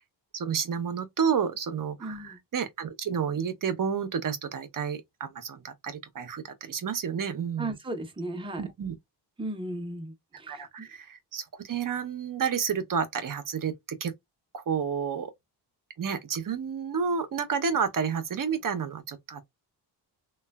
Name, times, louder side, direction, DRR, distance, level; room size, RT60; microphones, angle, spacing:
voice 1, 0.3-7.8 8.5-9.0 10.5-14.1 14.5-15.3 16.0-19.5, right 6 dB, 50° right, 0.7 m, -30 dB
voice 2, 2.0-2.4 7.6-8.6 9.4-10.9, right 1 dB, 10° right, 0.7 m, -36 dB
3.1 x 2.3 x 2.2 m
cardioid pair, 85°, 42 cm